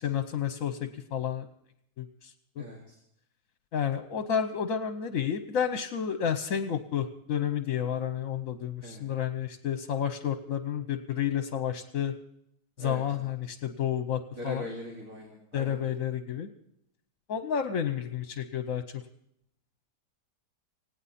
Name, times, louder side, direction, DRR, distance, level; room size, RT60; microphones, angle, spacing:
voice 1, 0.0-1.5 2.0-2.3 2.6-2.7 3.7-12.1 12.8-14.7 15.5-16.5 17.3-19.0, left 8 dB, 60° left, 9 dB, 1.2 m, -31 dB
voice 2, 2.6-3.0 8.8-9.0 12.8-13.3 14.4-15.9, left 1 dB, 50° right, -1 dB, 3.1 m, -41 dB
19.0 x 17.0 x 4.2 m, 0.76 s
omnidirectional pair, 1.8 m